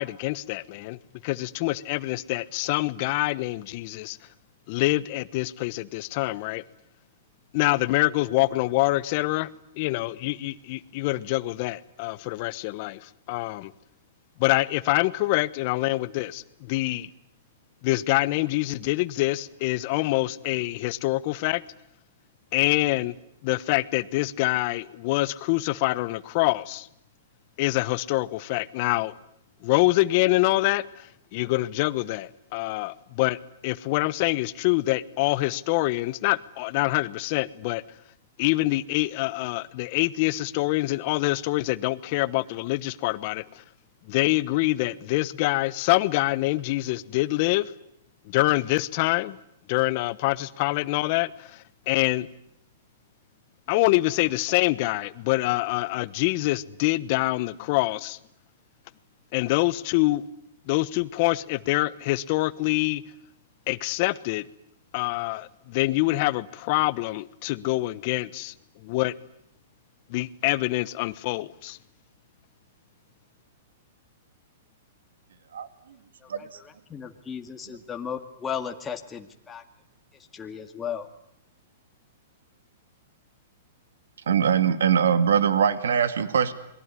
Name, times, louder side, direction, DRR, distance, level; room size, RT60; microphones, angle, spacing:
voice 1, 0.0-4.2 4.7-6.6 7.5-9.5 9.8-13.7 14.4-17.1 17.8-21.6 22.5-23.1 23.4-26.9 27.6-29.1 29.6-31.1 31.3-33.4 33.6-37.8 38.4-43.6 44.1-47.7 48.3-49.4 49.7-52.3 53.7-58.2 59.3-60.2 60.7-63.0 63.7-64.5 64.9-68.5 68.8-69.1 70.1-71.8, left 19 dB, 45° left, 17 dB, 1.2 m, -25 dB
voice 2, 76.2-79.6 80.3-81.1, left 7 dB, 15° left, 3 dB, 2.1 m, -35 dB
voice 3, 84.3-86.5, right 7 dB, 85° right, 12 dB, 2.1 m, -22 dB
28.0 x 21.5 x 9.8 m, 0.76 s
hypercardioid pair, 135°, 0 cm